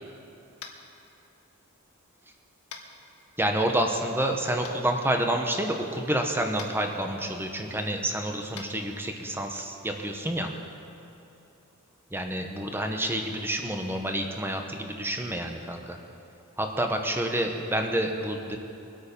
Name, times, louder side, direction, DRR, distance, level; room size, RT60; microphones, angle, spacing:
Tap, 0.6-0.9 2.7-2.9 4.6-4.7 6.5-6.7 8.5-8.7, left 6 dB, 90° left, 1.6 m, -41 dB
voice 1, 3.4-10.5 12.1-16.0 16.6-18.6, right 1 dB, 10° right, 3 dB, 1.1 m, -28 dB
22.5 x 8.8 x 5.4 m, 2.8 s
head